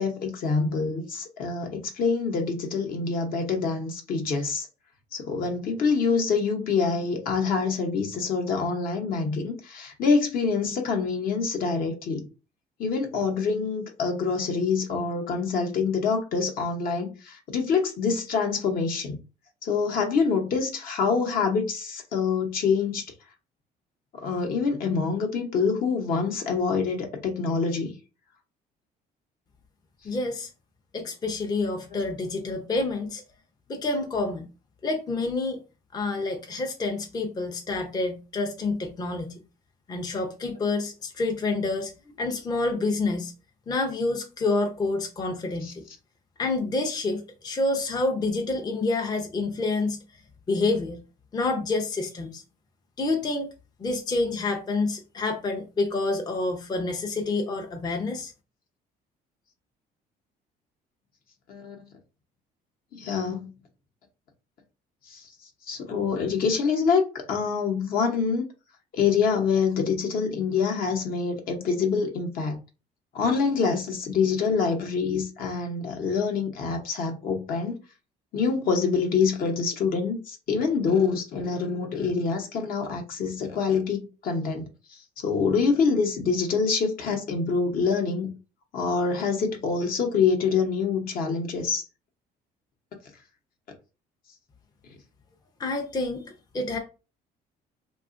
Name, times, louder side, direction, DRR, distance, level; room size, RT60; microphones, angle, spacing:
voice 1, 0.0-4.7 5.1-12.3 12.8-19.2 19.6-23.1 24.2-27.9 31.9-32.0 45.6-45.7 61.5-61.9 62.9-63.5 65.1-65.3 65.7-68.4 68.9-72.6 73.1-77.8 78.3-84.7 85.2-88.3 88.7-91.8, left 5 dB, 60° left, 0.8 m, -26 dB
voice 2, 30.0-30.5 30.9-33.2 33.7-34.5 34.8-35.6 35.9-39.3 39.9-41.9 42.2-43.3 43.7-45.8 46.4-50.0 50.5-51.0 51.3-52.4 53.0-53.5 53.8-58.3 95.6-96.2 96.5-96.8, left 3 dB, 25° left, 0.5 m, -28 dB
2.8 x 2.3 x 2.4 m
cardioid pair, 110°, 17 cm